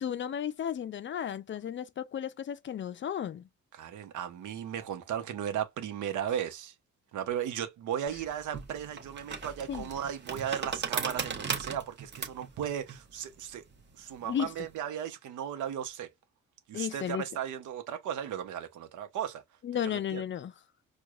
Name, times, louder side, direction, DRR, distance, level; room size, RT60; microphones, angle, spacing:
voice 1, 0.0-3.5 9.7-9.9 14.2-14.5 16.7-17.2 19.6-20.5, left 9 dB, 40° left, 0.4 m, -34 dB
voice 2, 3.7-6.7 7.1-13.6 14.0-16.1 16.7-19.4 19.8-20.2, right 9 dB, 80° right, 0.9 m, -36 dB
sound 1, 8.1-14.7, right 5 dB, 35° right, 1.0 m, -38 dB
4.6 x 2.3 x 2.4 m
cardioid pair, 90°, 30 cm